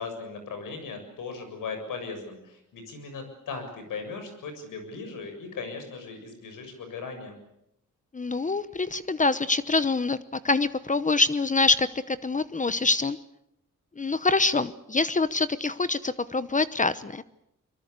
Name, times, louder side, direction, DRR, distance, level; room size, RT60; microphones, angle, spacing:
voice 1, 0.0-7.4, left 4 dB, 85° left, 7 dB, 7.2 m, -38 dB
voice 2, 8.1-13.2 14.0-17.2, left 3 dB, 25° left, 15 dB, 0.9 m, -25 dB
24.5 x 23.0 x 8.3 m, 0.80 s
cardioid pair, 105°, 31 cm